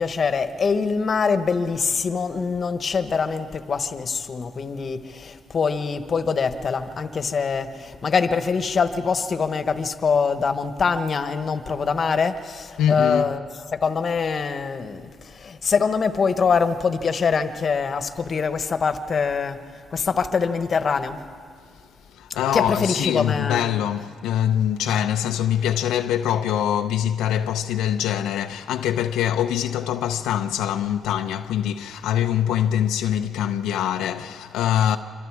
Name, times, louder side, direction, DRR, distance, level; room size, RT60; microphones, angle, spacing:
voice 1, 0.0-13.4 13.7-19.6 19.9-21.2 22.5-23.6, left 5 dB, 45° left, 1.2 m, -24 dB
voice 2, 12.8-13.3 22.2-35.0, left 10 dB, 90° left, 0.6 m, -24 dB
26.0 x 25.0 x 4.8 m
cardioid pair, 90°, 0 cm